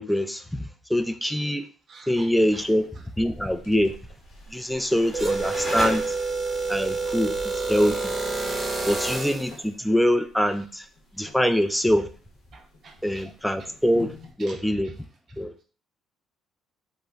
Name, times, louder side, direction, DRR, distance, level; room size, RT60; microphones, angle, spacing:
voice 1, 0.0-1.7 2.1-2.9 3.2-4.0 4.5-6.0 6.7-8.1 8.9-10.9 11.2-12.1 13.0-14.9 15.4-15.6, equal, 5° left, 9 dB, 0.3 m, -24 dB
voice 2, 1.9-2.7 6.4-6.5 12.5-13.3 13.6-13.7 14.4-14.9, right 4 dB, 55° right, 3 dB, 0.6 m, -49 dB
sound 1, 2.1-14.3, left 2 dB, 75° left, 0.6 m, -46 dB
sound 2, 4.3-6.7, left 1 dB, 25° left, 0.8 m, -36 dB
sound 3, 5.1-9.5, right 3 dB, 20° right, 0.8 m, -28 dB
2.3 x 2.0 x 3.4 m, 0.39 s
hypercardioid pair, 60°, 0 cm